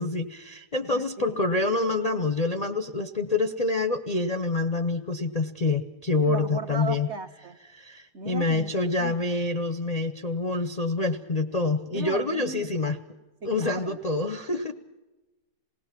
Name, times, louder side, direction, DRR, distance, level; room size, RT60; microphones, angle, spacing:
voice 1, 0.0-7.1 7.7-13.0 13.4-14.7, left 3 dB, 40° left, 8 dB, 0.5 m, -27 dB
voice 2, 0.9-1.4 6.3-7.6 8.1-9.2 11.9-12.7 13.4-14.0, right 4 dB, 50° right, 7 dB, 1.0 m, -37 dB
27.5 x 18.5 x 5.9 m, 1.1 s
omnidirectional pair, 1.8 m